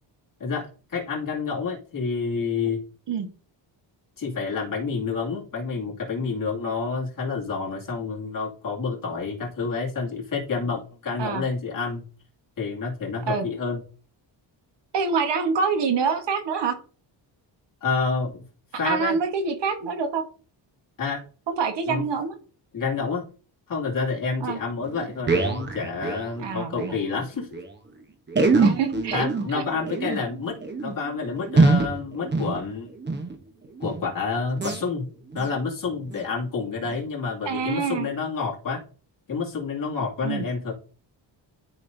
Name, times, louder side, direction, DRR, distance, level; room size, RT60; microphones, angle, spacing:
voice 1, 0.4-2.8 4.2-12.0 12.6-13.8 17.8-18.4 18.8-19.2 21.0-21.2 21.9-22.0 22.7-23.2 23.7-27.6 29.1-30.6 30.8-32.9 33.8-35.0 35.3-38.8 39.3-40.7, left 4 dB, 45° left, -2 dB, 2.5 m, -28 dB
voice 2, 14.9-16.8 18.8-20.2 21.5-22.4 24.4-24.6 26.4-27.0 28.5-29.2 29.5-29.6 37.4-38.1 40.2-40.4, right 5 dB, 65° right, 6 dB, 1.4 m, -26 dB
sound 1, 24.5-24.6 24.8-27.0 27.3-27.4 27.5-27.7 28.3-33.4 33.8-34.1 34.5-34.8 35.3-35.6 36.1-36.2 36.9-37.0, right 3 dB, 25° right, 1.0 m, -24 dB
12.5 x 5.3 x 2.7 m, 0.40 s
wide cardioid pair, 165°, 44 cm